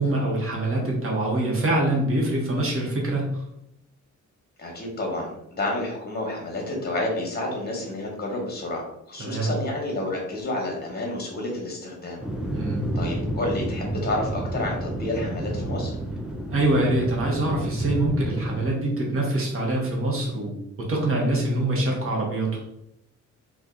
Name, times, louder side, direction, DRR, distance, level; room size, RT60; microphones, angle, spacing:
voice 1, 0.0-3.4 9.2-9.6 12.5-12.9 16.5-22.6, right 1 dB, 45° right, -2 dB, 1.0 m, -24 dB
voice 2, 4.6-12.2 12.9-16.0, left 2 dB, 30° left, -1 dB, 1.1 m, -30 dB
sound 1, 12.2-18.7, right 1 dB, 5° right, 0.3 m, -30 dB
2.7 x 2.4 x 3.5 m, 0.77 s
wide cardioid pair, 125°, 30 cm